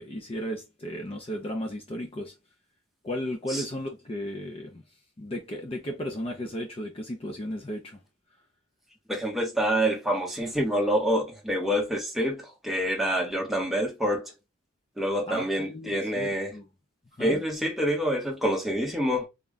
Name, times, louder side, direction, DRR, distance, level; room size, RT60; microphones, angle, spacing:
voice 1, 0.0-2.3 3.0-4.8 5.2-8.0 15.3-16.7 17.2-17.4, equal, 25° left, 0.5 m, -35 dB
voice 2, 9.1-14.3 15.0-16.5 17.2-19.3, equal, ahead, 0.9 m, -27 dB
3.5 x 2.3 x 3.8 m
head